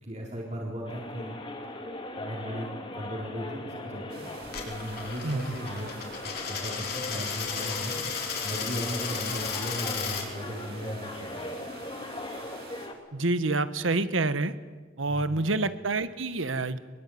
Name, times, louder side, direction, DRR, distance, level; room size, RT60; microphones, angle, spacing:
voice 1, 0.0-1.4 2.1-4.2 4.6-6.0 6.2-8.0 8.4-11.5 15.1-15.4, equal, 35° right, -3 dB, 4.3 m, -37 dB
sound 1, 0.9-12.9, left 1 dB, 25° left, 2.8 m, -39 dB
sound 2, 4.1-12.9, right 4 dB, 55° right, 5.4 m, -48 dB
Coin (dropping), 4.4-10.3, left 6 dB, 55° left, 4.9 m, -34 dB
voice 2, 13.1-14.5 15.0-16.8, right 2 dB, 80° right, 12 dB, 1.4 m, -27 dB
24.5 x 22.5 x 9.5 m, 1.4 s
head